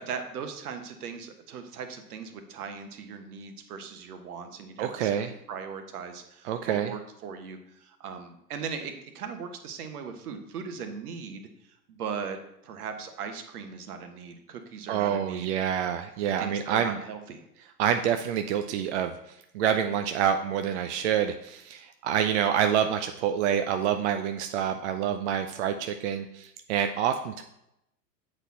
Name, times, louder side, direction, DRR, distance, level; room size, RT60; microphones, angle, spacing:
voice 1, 0.0-5.2 5.5-12.4 12.6-15.5 16.4-17.5, right 6 dB, 65° right, 7 dB, 1.3 m, -39 dB
voice 2, 4.8-5.3 6.4-6.9 14.9-17.0 17.8-27.4, right 9 dB, 45° right, 6 dB, 0.5 m, -27 dB
7.9 x 4.3 x 4.2 m, 0.81 s
hypercardioid pair, 105°, 49 cm